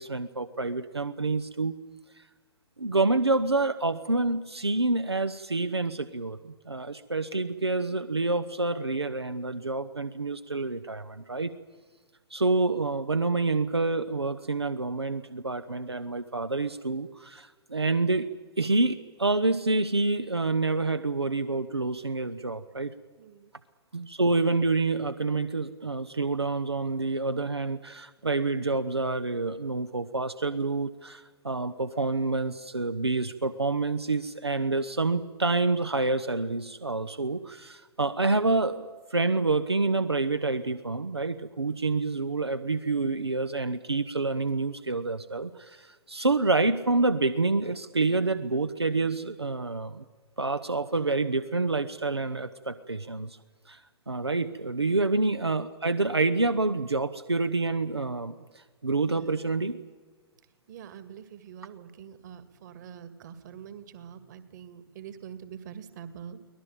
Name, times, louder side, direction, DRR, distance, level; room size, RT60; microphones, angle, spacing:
voice 1, 0.0-1.7 2.8-11.5 12.3-18.3 18.6-22.9 23.9-50.0 50.4-53.4 53.7-53.8 54.1-58.3 58.8-59.8, right 3 dB, 85° right, 10 dB, 1.0 m, -27 dB
voice 2, 23.2-23.5 54.8-55.0 59.1-59.4 60.7-66.4, right 8 dB, 45° right, 12 dB, 2.1 m, -45 dB
24.0 x 18.5 x 8.9 m, 1.4 s
figure-of-eight pair, 115°, 13 cm